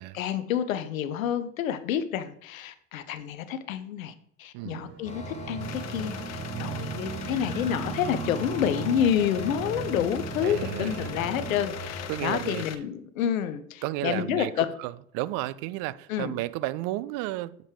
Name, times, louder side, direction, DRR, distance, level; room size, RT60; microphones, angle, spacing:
voice 1, 0.0-4.1 4.4-14.7 16.1-16.4, left 9 dB, 80° left, 0.8 m, -29 dB
voice 2, 4.5-4.9 6.5-6.9 10.4-11.1 12.1-12.6 13.8-17.6, right 17 dB, 55° right, 0.5 m, -33 dB
sound 1, 4.6-11.5, right 9 dB, 35° right, 1.5 m, -38 dB
sound 2, 5.0-12.1, left 1 dB, 15° left, 1.9 m, -40 dB
sound 3, 5.6-12.8, left 9 dB, 40° left, 0.8 m, -41 dB
7.4 x 5.2 x 4.8 m
hypercardioid pair, 65°, 40 cm